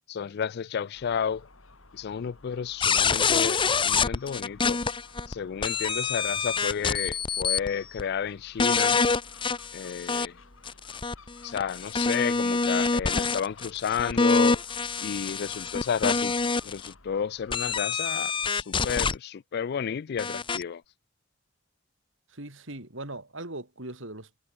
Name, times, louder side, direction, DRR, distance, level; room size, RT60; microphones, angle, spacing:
voice 1, 0.1-1.5 1.9-4.8 5.3-9.0 9.7-10.4 11.4-14.6 15.0-16.3 16.6-20.8, left 7 dB, 55° left, 0.4 m, -31 dB
Gull seagull, 0.9-17.8, left 3 dB, 90° left, 4.1 m, -53 dB
sound 1, 2.8-5.3 5.6-7.7 8.0-8.1 8.6-10.3 10.7-16.9 17.5-19.1 20.2-20.6, left 4 dB, 25° left, 0.7 m, -26 dB
voice 2, 22.3-24.4, right 2 dB, 70° right, 5.2 m, -40 dB
head